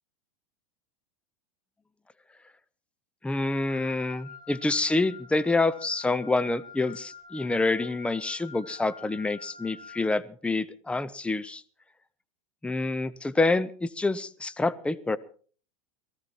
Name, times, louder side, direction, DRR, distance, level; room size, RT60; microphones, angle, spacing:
voice 1, 3.2-11.6 12.6-15.2, left 3 dB, 5° left, 16 dB, 0.8 m, -27 dB
Wind instrument woodwind instrument, 3.7-10.1, left 5 dB, 25° left, 3.5 m, -47 dB
18.5 x 15.0 x 4.5 m, 0.43 s
hypercardioid pair, 90°, 18 cm